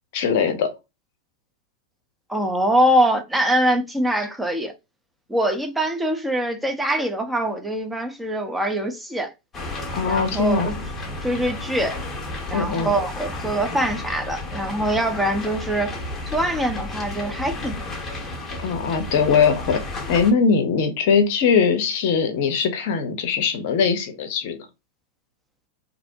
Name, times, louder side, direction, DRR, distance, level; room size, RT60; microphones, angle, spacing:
voice 1, 0.1-0.7 9.9-10.7 12.5-12.9 18.6-24.6, left 6 dB, 50° left, 0.6 m, -21 dB
voice 2, 2.3-4.7 5.3-9.3 10.0-10.7 11.2-12.0 12.5-15.9 16.3-17.8, right 1 dB, 5° right, 0.6 m, -23 dB
sound 1, 9.5-20.3, left 2 dB, 20° left, 0.8 m, -32 dB
2.5 x 2.1 x 2.7 m
figure-of-eight pair, 90°, 0 cm